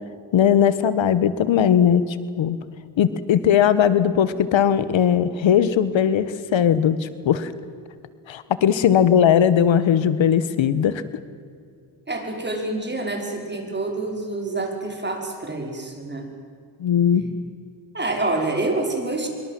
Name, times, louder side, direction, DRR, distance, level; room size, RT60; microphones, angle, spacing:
voice 1, 0.3-2.6 3.0-7.5 8.3-11.0 16.8-17.2, left 8 dB, 65° left, 14 dB, 1.4 m, -19 dB
voice 2, 12.1-16.3 17.2-17.3 17.9-19.3, right 2 dB, 20° right, 2 dB, 5.6 m, -27 dB
25.0 x 23.5 x 7.7 m, 2.3 s
cardioid pair, 105°, 49 cm